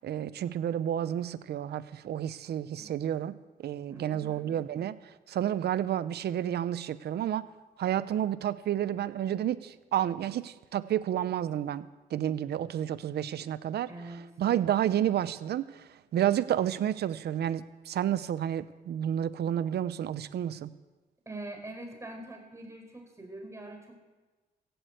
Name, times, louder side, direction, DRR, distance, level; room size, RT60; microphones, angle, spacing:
voice 1, 0.0-3.3 3.6-7.5 7.8-20.7, right 10 dB, 80° right, 15 dB, 0.7 m, -30 dB
voice 2, 3.9-4.5 13.9-14.3 21.2-24.0, right 2 dB, 15° right, 3 dB, 4.8 m, -43 dB
16.0 x 7.9 x 8.0 m, 1.2 s
cardioid pair, 70°, 17 cm